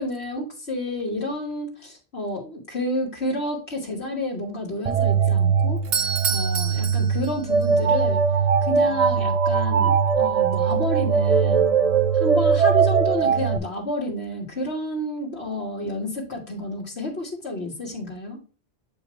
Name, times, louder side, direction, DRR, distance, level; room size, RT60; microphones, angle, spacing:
voice 1, 0.0-8.2 8.6-11.8 12.1-18.4, left 1 dB, 80° left, -2 dB, 1.9 m, -30 dB
sound 1, 4.9-13.6, right 6 dB, 55° right, 0.4 m, -20 dB
Doorbell, 5.8-7.7, right 6 dB, 70° right, 1.0 m, -28 dB
7.5 x 5.0 x 3.1 m, 0.36 s
omnidirectional pair, 1.1 m